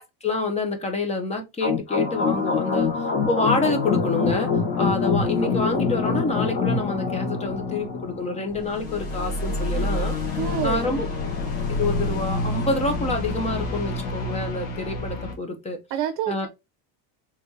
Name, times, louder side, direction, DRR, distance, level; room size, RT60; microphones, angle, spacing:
voice 1, 0.0-4.5 4.8-10.1 10.6-11.1 11.8-15.8 16.3-16.5, left 2 dB, 15° left, 0.6 m, -27 dB
sound 1, 1.6-15.3, left 4 dB, 80° left, 1.6 m, -26 dB
voice 2, 10.4-10.9 15.9-16.5, right 9 dB, 55° right, 0.7 m, -27 dB
3.5 x 3.4 x 2.7 m
cardioid pair, 150°, 49 cm